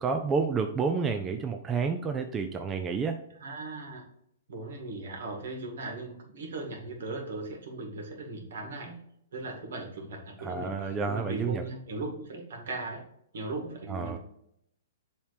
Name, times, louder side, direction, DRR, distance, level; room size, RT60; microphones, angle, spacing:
voice 1, 0.0-3.2 10.4-11.6 13.9-14.2, right 5 dB, 20° right, 6 dB, 0.5 m, -30 dB
voice 2, 3.4-4.0 4.5-9.0 9.3-13.0 13.3-14.2, right 2 dB, 70° right, 2 dB, 2.0 m, -38 dB
7.1 x 3.1 x 4.9 m, 0.73 s
hypercardioid pair, 130°, 0 cm